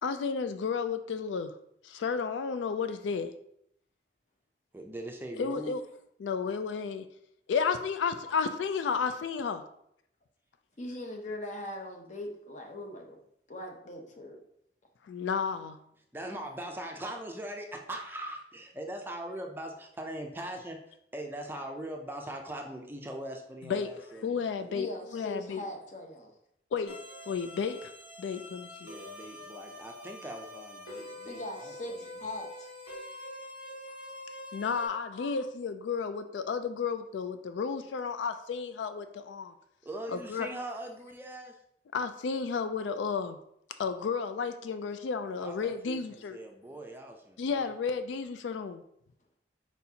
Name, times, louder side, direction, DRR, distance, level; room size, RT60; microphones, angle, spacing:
voice 1, 0.0-1.5 1.8-3.3 5.4-5.8 6.2-7.1 7.5-9.6 15.0-15.8 23.6-23.9 24.2-24.9 25.1-25.6 26.7-27.0 27.3-27.9 28.2-28.9 34.5-39.5 40.1-40.5 41.9-43.4 43.8-46.4 47.4-48.8, left 5 dB, 85° left, 10 dB, 0.3 m, -32 dB
voice 2, 4.7-5.8 16.1-24.8 28.8-32.0 39.8-41.6 45.3-47.7, right 1 dB, 10° right, 2 dB, 0.4 m, -41 dB
voice 3, 10.8-13.2 13.5-14.4 24.7-26.3 31.2-32.7 34.9-35.3, left 1 dB, 40° left, 2 dB, 0.8 m, -40 dB
sound 1, 26.9-34.9, left 1 dB, 65° left, 1.3 m, -45 dB
4.7 x 4.2 x 2.7 m, 0.74 s
head